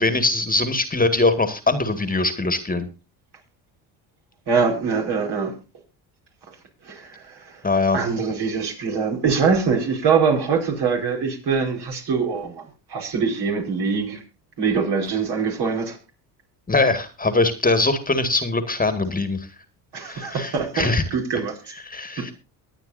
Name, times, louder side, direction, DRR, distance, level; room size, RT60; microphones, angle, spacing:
voice 1, 0.0-2.9 7.6-8.0 16.7-19.5 20.0-21.0 21.8-22.3, left 3 dB, 20° left, 10 dB, 1.9 m, -22 dB
voice 2, 4.5-5.5 6.8-7.6 7.9-14.2 14.6-16.0 19.9-21.6 22.2-22.3, right 5 dB, 60° right, 2 dB, 4.9 m, -23 dB
23.0 x 8.9 x 2.7 m, 0.29 s
supercardioid pair, 70°, 46 cm